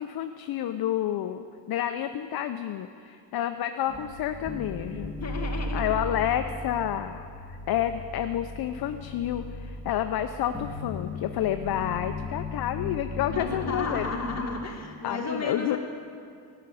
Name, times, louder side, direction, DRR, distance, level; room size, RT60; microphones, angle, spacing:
voice 1, 0.0-5.1 5.7-14.1 14.4-14.5 15.0-15.8, left 11 dB, 60° left, 8 dB, 0.6 m, -30 dB
sound 1, 3.9-14.4, left 2 dB, 5° left, 1.7 m, -37 dB
voice 2, 5.2-6.0 13.3-15.8, left 3 dB, 35° left, 0 dB, 1.9 m, -33 dB
13.5 x 6.7 x 9.0 m, 2.4 s
cardioid pair, 130°, 43 cm